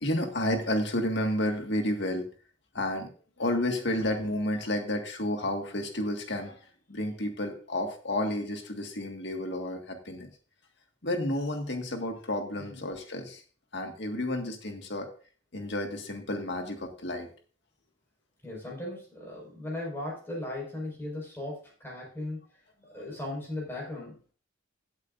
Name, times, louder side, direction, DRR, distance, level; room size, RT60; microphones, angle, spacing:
voice 1, 0.0-2.3 2.7-3.1 3.4-6.6 6.9-10.3 11.0-13.4 13.7-15.1 15.5-17.3 22.8-22.9, left 1 dB, 60° left, 4 dB, 1.9 m, -31 dB
voice 2, 18.4-22.4 22.9-24.3, left 1 dB, 10° left, -3 dB, 5.3 m, -37 dB
16.0 x 8.2 x 2.6 m, 0.39 s
head